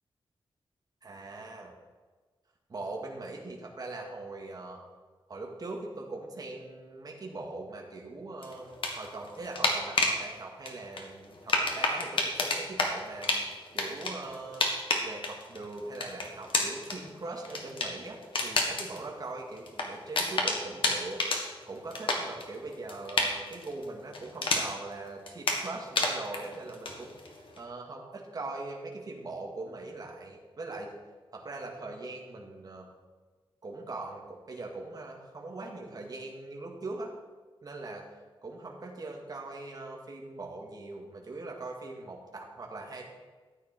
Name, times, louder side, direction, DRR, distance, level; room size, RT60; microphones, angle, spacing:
voice 1, 1.0-1.7 2.7-4.8 5.3-13.3 13.7-14.7 15.0-30.9 31.3-32.9 33.6-37.1 37.6-38.1 38.4-43.1, right 2 dB, 45° right, 0 dB, 2.1 m, -41 dB
sound 1, 8.4-10.2 10.7-24.9 25.3-27.6, left 2 dB, 65° left, 1.7 m, -31 dB
14.0 x 9.1 x 4.5 m, 1.3 s
wide cardioid pair, 145°, 9 cm